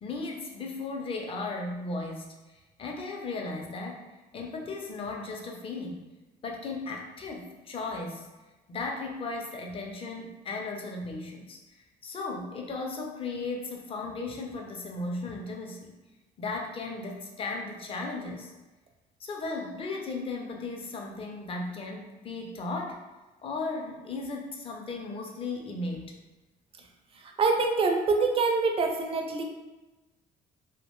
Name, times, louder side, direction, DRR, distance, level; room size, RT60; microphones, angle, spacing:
voice 1, 0.0-2.3 2.8-6.0 6.4-8.3 8.7-11.6 12.0-15.9 16.4-18.5 19.2-23.0 23.4-26.1, left 3 dB, 35° left, 1 dB, 0.5 m, -36 dB
voice 2, 27.4-29.4, right 4 dB, 35° right, 3 dB, 0.4 m, -25 dB
2.5 x 2.1 x 2.9 m, 1.1 s
cardioid pair, 110°, 17 cm